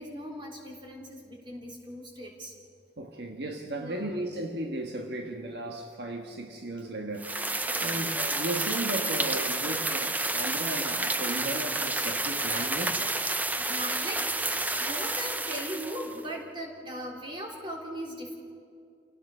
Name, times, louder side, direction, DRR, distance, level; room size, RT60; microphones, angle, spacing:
voice 1, 0.0-2.5 3.8-4.2 7.7-8.1 13.6-18.3, equal, 30° right, 0 dB, 3.7 m, -39 dB
voice 2, 3.0-13.1, right 1 dB, 65° right, 3 dB, 1.5 m, -35 dB
sound 1, 7.2-16.2, right 2 dB, 10° right, 0.6 m, -30 dB
28.5 x 18.0 x 5.6 m, 2.3 s
head